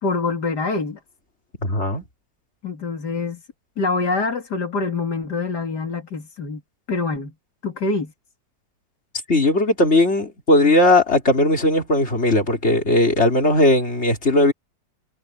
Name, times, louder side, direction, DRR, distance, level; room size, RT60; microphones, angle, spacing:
voice 1, 0.0-1.0 2.6-3.4 3.8-6.6 6.9-7.3 7.6-8.1, left 3 dB, 65° left, 3.5 m, -25 dB
voice 2, 1.6-2.0 9.3-14.5, left 1 dB, 35° left, 4.3 m, -18 dB
omnidirectional pair, 1.9 m